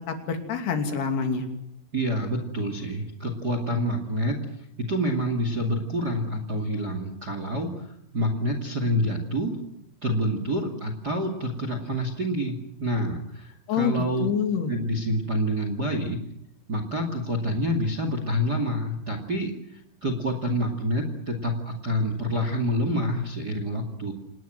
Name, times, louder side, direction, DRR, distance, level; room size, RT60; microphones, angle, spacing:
voice 1, 0.1-1.5 13.7-14.7, left 6 dB, 65° left, 5 dB, 4.6 m, -26 dB
voice 2, 1.9-4.4 4.8-7.9 8.1-9.6 10.0-14.3 14.7-16.2 16.7-24.1, equal, 30° right, 6 dB, 2.1 m, -27 dB
28.0 x 19.0 x 7.8 m, 0.76 s
omnidirectional pair, 5.1 m